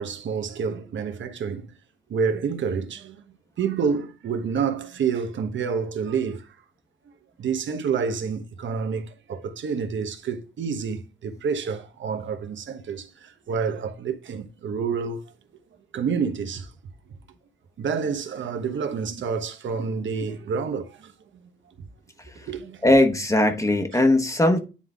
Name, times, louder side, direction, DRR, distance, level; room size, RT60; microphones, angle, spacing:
voice 1, 0.0-1.7 2.1-3.2 3.6-6.5 7.4-15.2 15.9-16.7 17.8-21.1 22.4-22.8, right 6 dB, 80° right, 1.1 m, -28 dB
voice 2, 22.8-24.6, left 1 dB, 15° left, 1.0 m, -19 dB
9.9 x 3.8 x 3.6 m
cardioid pair, 100°, 19 cm